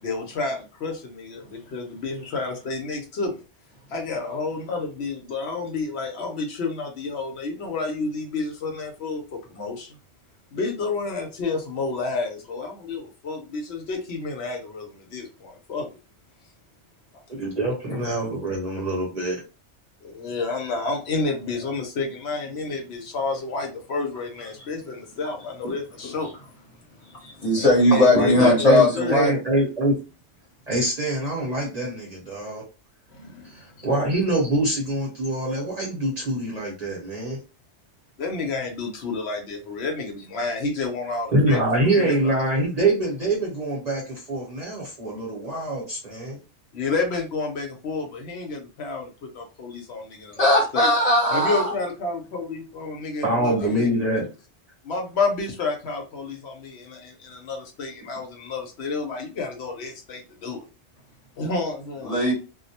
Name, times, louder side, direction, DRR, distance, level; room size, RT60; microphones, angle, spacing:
voice 1, 0.0-3.4 3.9-9.9 10.5-15.9 20.0-26.3 27.5-29.2 33.1-33.9 38.2-41.6 41.9-42.4 46.7-49.1 49.3-50.9 51.3-53.9 54.8-60.6 61.4-62.1, left 3 dB, 70° left, 0.8 m, -30 dB
voice 2, 17.3-19.4 28.1-29.9 30.7-32.6 33.4-37.4 41.3-46.4 53.2-54.2, right 1 dB, 40° right, 0.8 m, -24 dB
voice 3, 27.2-29.3 50.3-51.7 62.0-62.3, left 1 dB, 35° left, 0.9 m, -19 dB
2.2 x 2.0 x 2.7 m
omnidirectional pair, 1.2 m